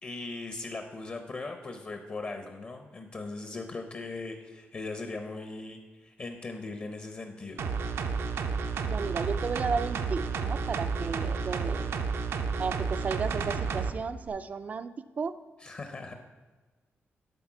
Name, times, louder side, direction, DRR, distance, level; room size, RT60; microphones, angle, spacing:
voice 1, 0.0-7.6 15.6-16.1, left 3 dB, 35° left, 5 dB, 0.7 m, -39 dB
sound 1, 7.6-13.9 14.3-14.4, right 5 dB, 80° right, 0.6 m, -31 dB
voice 2, 8.9-11.9 12.6-15.3, right 5 dB, 35° right, 12 dB, 0.3 m, -34 dB
11.5 x 4.2 x 5.9 m, 1.3 s
wide cardioid pair, 165°, 4 cm